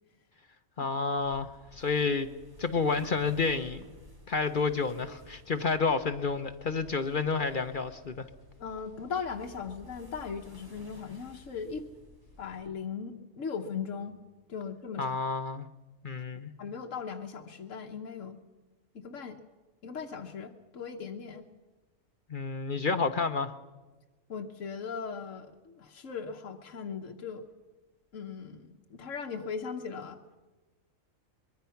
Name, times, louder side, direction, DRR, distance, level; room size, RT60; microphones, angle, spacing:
voice 1, 0.8-2.3 2.6-3.8 4.3-8.3 15.0-15.7 16.0-16.5 22.3-23.5, left 4 dB, 45° left, 0.9 m, -30 dB
sound 1, 1.1-12.7, left 1 dB, 15° right, 2.7 m, -54 dB
voice 2, 8.6-11.9 12.4-14.2 14.5-15.2 16.6-18.4 18.9-19.4 19.8-21.4 24.3-27.4 28.1-30.2, left 6 dB, 70° left, 1.5 m, -38 dB
24.0 x 22.0 x 5.8 m
omnidirectional pair, 1.4 m